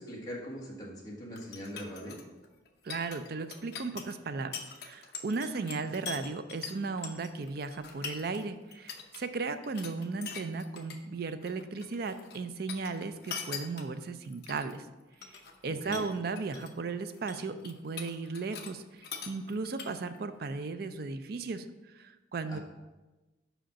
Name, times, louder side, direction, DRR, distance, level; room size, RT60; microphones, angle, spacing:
voice 1, 0.0-2.2 15.6-16.1 22.5-22.6, equal, 20° left, -4 dB, 1.4 m, -41 dB
sound 1, 1.4-8.4 8.7-9.2 9.5-11.0 11.2-12.4 12.7-14.8 15.1-15.6 15.9-16.8 17.0-18.7 19.0-20.2, left 6 dB, 55° left, 0.8 m, -43 dB
voice 2, 2.8-14.8 15.6-18.8 19.3-21.7 22.0-22.6, right 4 dB, 55° right, 10 dB, 0.4 m, -36 dB
5.1 x 5.0 x 5.7 m, 1.1 s
head